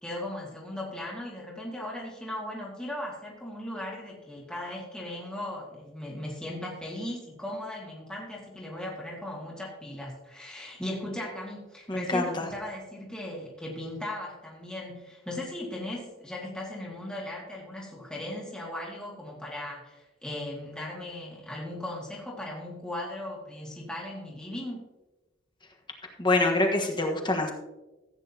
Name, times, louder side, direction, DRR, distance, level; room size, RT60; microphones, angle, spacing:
voice 1, 0.0-24.8, left 1 dB, 5° left, -4 dB, 1.9 m, -37 dB
voice 2, 11.9-12.3 26.2-27.5, left 2 dB, 25° left, 2 dB, 1.4 m, -25 dB
15.0 x 8.9 x 2.8 m, 1.1 s
head